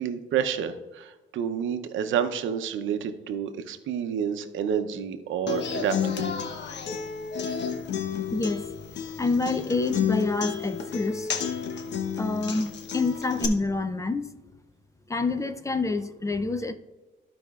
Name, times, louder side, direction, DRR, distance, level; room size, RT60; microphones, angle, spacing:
voice 1, 0.0-6.5, right 8 dB, 75° right, 8 dB, 0.7 m, -29 dB
Human voice / Acoustic guitar, 5.5-13.5, left 7 dB, 60° left, 0.9 m, -31 dB
voice 2, 8.3-8.7 9.2-11.3 12.2-14.3 15.1-16.7, left 3 dB, 15° left, 10 dB, 0.5 m, -27 dB
14.0 x 5.1 x 2.4 m, 1.2 s
cardioid pair, 90°, 20 cm